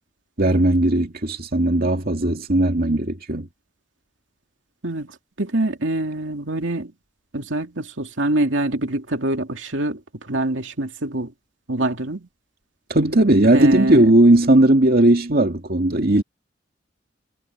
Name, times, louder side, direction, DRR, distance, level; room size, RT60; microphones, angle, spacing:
voice 1, 0.4-3.5 12.9-16.2, right 1 dB, 55° right, 2.4 m, -17 dB
voice 2, 5.4-6.9 7.3-10.0 10.3-11.3 11.7-12.3 13.5-14.1, right 2 dB, 80° right, 2.6 m, -24 dB
head